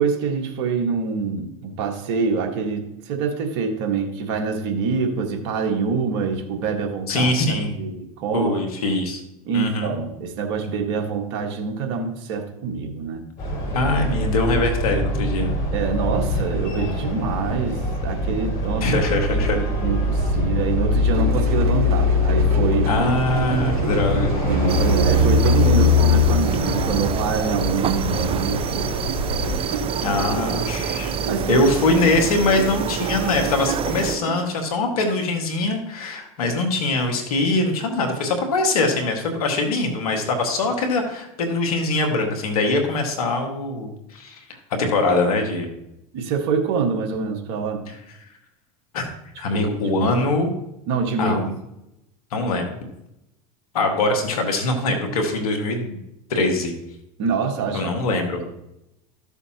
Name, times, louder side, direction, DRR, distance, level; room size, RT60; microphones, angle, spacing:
voice 1, 0.0-7.3 7.6-8.6 9.4-13.3 15.7-18.9 19.5-22.9 24.4-29.0 31.2-32.0 46.1-47.8 49.5-50.1 50.9-51.4 57.2-57.9, right 5 dB, 65° right, 3 dB, 1.6 m, -25 dB
voice 2, 7.1-7.8 8.3-9.2 9.5-9.9 13.7-15.5 18.8-19.6 22.9-24.4 30.0-31.1 31.5-44.4 44.8-45.7 48.9-49.0 49.4-50.5 51.2-51.5 52.3-52.7 53.7-56.0 56.3-56.7 57.7-58.4, left 2 dB, 85° left, 4 dB, 1.8 m, -22 dB
sound 1, 13.4-29.6, left 2 dB, 50° left, 4.0 m, -22 dB
sound 2, 21.1-34.5, right 5 dB, 90° right, 0.9 m, -31 dB
sound 3, 24.7-34.2, right 8 dB, 30° right, 0.5 m, -28 dB
13.5 x 6.9 x 2.9 m, 0.87 s
hypercardioid pair, 95°, 18 cm